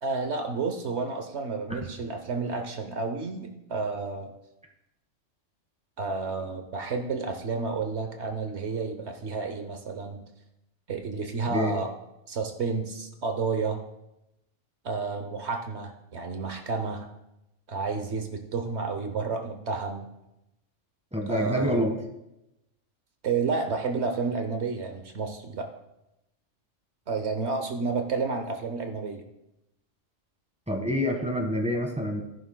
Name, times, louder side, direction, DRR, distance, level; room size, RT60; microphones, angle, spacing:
voice 1, 0.0-4.3 6.0-10.2 10.9-11.9 12.3-13.8 14.8-17.1 17.7-20.1 21.3-21.9 23.2-25.7 27.1-29.2, right 4 dB, 65° right, 6 dB, 1.2 m, -31 dB
voice 2, 21.1-22.0 30.7-32.2, equal, 5° right, 2 dB, 1.5 m, -27 dB
13.5 x 11.0 x 2.2 m, 0.88 s
omnidirectional pair, 1.3 m